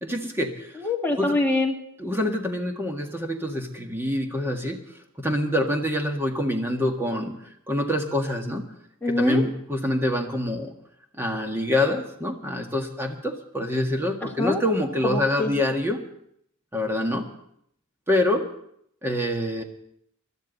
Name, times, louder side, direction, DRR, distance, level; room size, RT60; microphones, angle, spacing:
voice 1, 0.0-0.7 1.2-1.4 2.0-4.8 5.2-7.3 7.7-8.6 9.1-10.7 11.2-16.0 16.7-17.2 18.1-18.4 19.0-19.6, left 1 dB, 10° right, 3 dB, 1.8 m, -26 dB
voice 2, 0.8-1.7 9.0-9.4 14.4-14.6 15.0-15.5, left 2 dB, 10° left, 0 dB, 1.8 m, -24 dB
21.0 x 13.0 x 4.1 m, 0.71 s
head